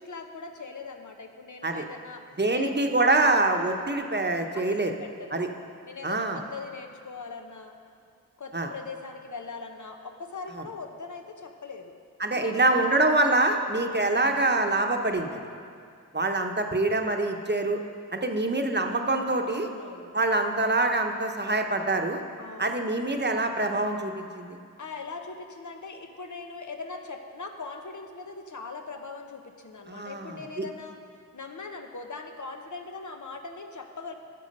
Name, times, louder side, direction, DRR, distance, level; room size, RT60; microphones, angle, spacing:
voice 1, 0.0-2.2 2.5-2.7 3.2-3.5 4.5-5.5 5.8-7.7 8.4-11.9 12.3-13.1 13.8-14.0 18.8-19.1 19.5-20.1 22.4-22.8 24.8-31.0 31.3-34.1, left 4 dB, 70° left, 4 dB, 0.9 m, -41 dB
voice 2, 2.4-4.9 5.3-5.5 6.0-6.4 8.5-8.7 12.2-15.4 16.1-17.8 18.1-19.7 20.1-22.2 22.6-24.6 29.9-30.6, right 2 dB, 35° right, 4 dB, 0.9 m, -25 dB
14.0 x 6.1 x 5.3 m, 2.3 s
wide cardioid pair, 50°, 31 cm